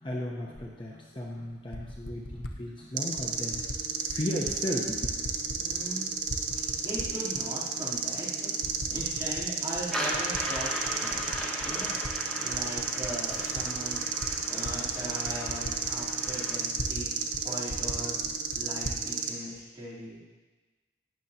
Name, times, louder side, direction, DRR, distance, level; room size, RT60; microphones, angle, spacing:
voice 1, 0.0-3.6 4.1-5.2 11.2-11.3, equal, 30° left, -2 dB, 0.9 m, -35 dB
Typing, 0.5-0.7 1.5-2.6 3.2-3.8 4.1-4.6 4.8-5.9 6.2-7.4 8.0-8.1 8.6-9.5 9.8-12.1 12.5-17.1 17.3-17.4 17.7-19.0, left 1 dB, 85° left, 0.8 m, -40 dB
sound 1, 3.0-19.3, right 6 dB, 80° right, 1.1 m, -32 dB
voice 2, 5.6-6.1 6.8-11.3 11.6-14.0 14.5-18.2 18.5-20.2, right 1 dB, 20° right, -9 dB, 3.5 m, -39 dB
sound 2, 9.9-16.6, equal, 5° left, 1.4 m, -37 dB
18.5 x 6.6 x 2.9 m, 1.3 s
head